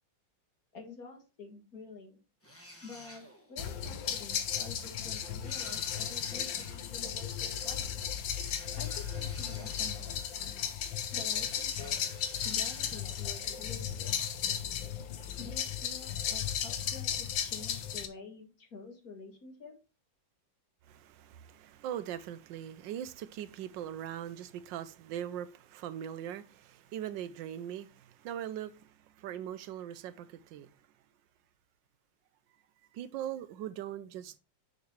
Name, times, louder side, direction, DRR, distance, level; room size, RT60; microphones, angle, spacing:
voice 1, 0.7-2.2 2.8-7.9 8.8-10.1 11.1-12.0 12.4-14.4 15.4-19.7, left 4 dB, 50° left, 2.2 m, -49 dB
sound 1, 2.4-3.6 5.4-6.8 8.4-10.5 11.4-13.4, equal, 10° left, 1.5 m, -52 dB
sound 2, 3.6-18.1, left 9 dB, 85° left, 1.6 m, -35 dB
voice 2, 20.9-30.7 32.9-34.4, right 10 dB, 85° right, 1.3 m, -41 dB
6.9 x 6.5 x 3.1 m
omnidirectional pair, 2.0 m